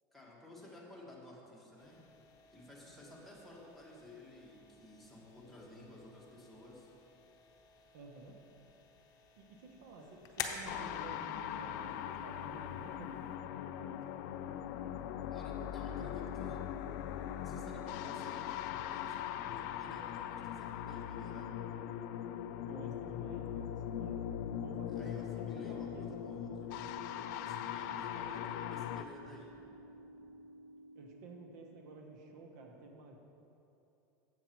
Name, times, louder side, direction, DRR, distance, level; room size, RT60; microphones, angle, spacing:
voice 1, 0.1-2.0 2.5-6.9 10.0-10.2 15.3-16.6 17.4-18.5 18.8-21.5 24.9-26.7 27.4-29.5, left 2 dB, ahead, -5 dB, 1.5 m, -53 dB
sound 1, 1.8-13.4, left 7 dB, 40° left, 0.8 m, -50 dB
voice 2, 7.9-8.4 9.4-13.1 22.6-24.2 24.6-26.1 30.9-33.2, right 3 dB, 75° right, 2 dB, 1.0 m, -52 dB
sound 2, 10.7-29.0, left 10 dB, 65° left, 0.4 m, -40 dB
sound 3, 25.6-32.2, right 1 dB, 35° right, 1.4 m, -54 dB
7.7 x 7.0 x 4.5 m, 2.8 s
supercardioid pair, 130°, 10 cm